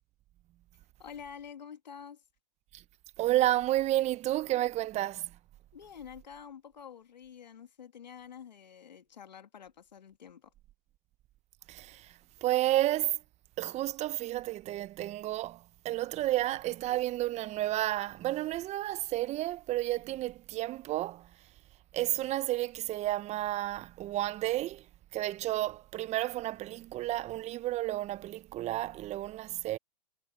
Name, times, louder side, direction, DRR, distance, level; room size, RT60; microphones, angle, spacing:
voice 1, 1.0-2.2 5.7-10.5, left 7 dB, 85° left, 2.2 m, -48 dB
voice 2, 3.2-5.4 11.7-13.2 13.6-21.3 21.9-24.9 25.1-29.8, right 15 dB, 30° right, 1.0 m, -31 dB
hypercardioid pair, 110°, 21 cm